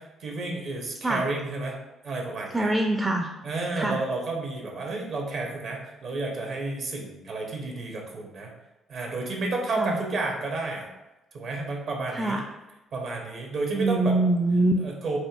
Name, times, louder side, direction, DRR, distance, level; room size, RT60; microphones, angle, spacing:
voice 1, 0.0-1.8 2.0-2.7 3.4-8.5 8.9-10.9 11.3-12.4 12.9-14.1 14.8-15.2, right 3 dB, 55° right, 1 dB, 0.8 m, -31 dB
voice 2, 2.5-3.3 3.8-4.0 9.8-10.0 12.1-12.4 13.7-14.7, right 2 dB, 15° right, 2 dB, 0.4 m, -24 dB
4.3 x 2.6 x 2.4 m, 1.0 s
hypercardioid pair, 45°, 0 cm